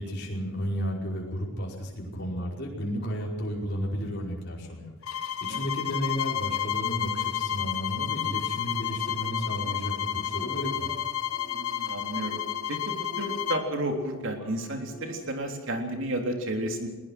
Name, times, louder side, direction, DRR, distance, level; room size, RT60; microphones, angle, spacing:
voice 1, 0.0-10.9, equal, 50° left, -2 dB, 5.2 m, -33 dB
sound 1, 5.0-13.7, left 10 dB, 80° left, 1.2 m, -31 dB
sound 2, 8.9-15.2, left 2 dB, 20° right, 6.1 m, -48 dB
voice 2, 11.5-12.4 12.7-16.9, right 1 dB, 60° right, 3 dB, 3.5 m, -32 dB
21.0 x 20.5 x 6.2 m, 1.3 s
head